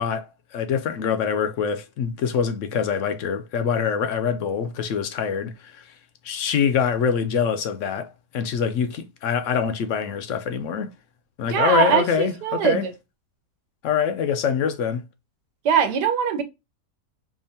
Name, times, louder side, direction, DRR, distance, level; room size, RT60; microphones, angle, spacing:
voice 1, 0.0-5.8 6.2-10.9 11.4-12.9 13.8-15.0, left 7 dB, 70° left, 0.7 m, -24 dB
voice 2, 11.5-12.9 15.6-16.4, right 7 dB, 85° right, 1.4 m, -21 dB
5.0 x 2.5 x 2.6 m
omnidirectional pair, 1.7 m